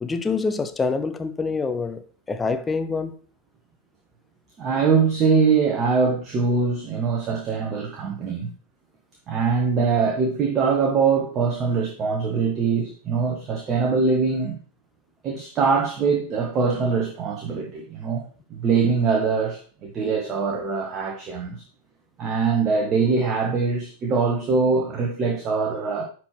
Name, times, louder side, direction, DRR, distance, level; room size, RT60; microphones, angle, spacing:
voice 1, 0.0-3.2, left 4 dB, 15° left, 0.7 m, -26 dB
voice 2, 4.6-8.5 9.3-14.5 15.2-18.2 18.5-21.6 22.2-26.0, right 5 dB, 30° right, 1.4 m, -23 dB
10.0 x 4.7 x 3.2 m
figure-of-eight pair, 90°, 0 cm